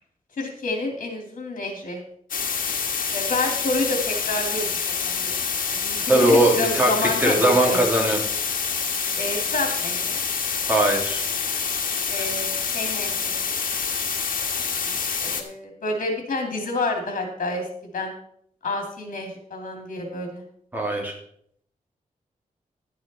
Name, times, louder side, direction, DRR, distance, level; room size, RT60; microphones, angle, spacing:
voice 1, 0.4-2.0 3.1-4.7 5.0-5.3 5.7-7.9 9.2-10.2 12.1-13.4 15.2-17.6 17.9-18.2 18.6-20.4, left 2 dB, 65° left, 2 dB, 2.6 m, -28 dB
sound 1, 2.3-15.4, left 6 dB, 80° left, 1.3 m, -27 dB
voice 2, 6.1-8.2 10.7-11.2 20.7-21.1, right 1 dB, 15° right, 0 dB, 2.4 m, -20 dB
11.0 x 9.5 x 4.2 m, 0.67 s
wide cardioid pair, 150°, 14 cm